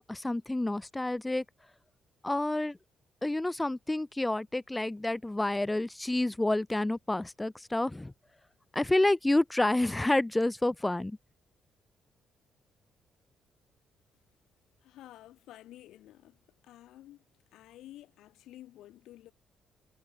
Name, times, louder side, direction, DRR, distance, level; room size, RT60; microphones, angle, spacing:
voice 1, 0.1-1.4 2.2-2.8 3.2-8.1 8.7-11.2, left 2 dB, 10° left, 0.6 m, -29 dB
voice 2, 14.8-17.2 17.5-19.3, left 14 dB, 85° left, 1.9 m, -52 dB
cardioid pair, 90°, 0 cm